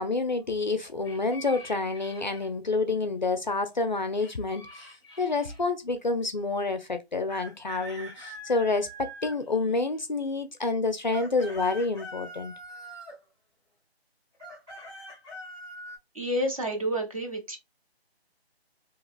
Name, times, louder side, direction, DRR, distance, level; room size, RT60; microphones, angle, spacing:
voice 1, 0.0-4.9 5.2-12.5, left 3 dB, 45° left, 0.5 m, -28 dB
sound 1, 1.0-2.5 4.2-5.6 7.3-10.0 10.9-13.2 14.3-16.0, equal, 10° right, 1.0 m, -44 dB
voice 2, 16.1-17.6, equal, 35° right, 0.8 m, -29 dB
3.7 x 2.9 x 2.3 m
figure-of-eight pair, 170°, 32 cm